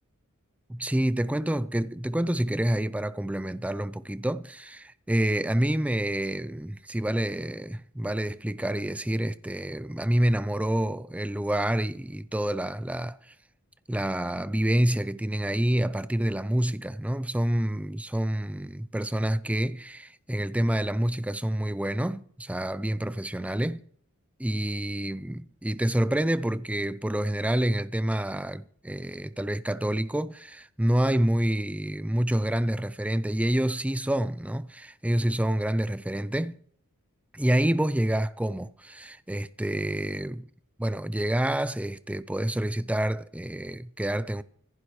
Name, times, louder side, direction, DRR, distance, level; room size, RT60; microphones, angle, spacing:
voice 1, 0.7-13.3 13.9-23.8 24.4-36.6 37.3-40.5 40.8-44.4, right 1 dB, 5° right, 0.5 m, -28 dB
25.0 x 11.0 x 3.2 m
head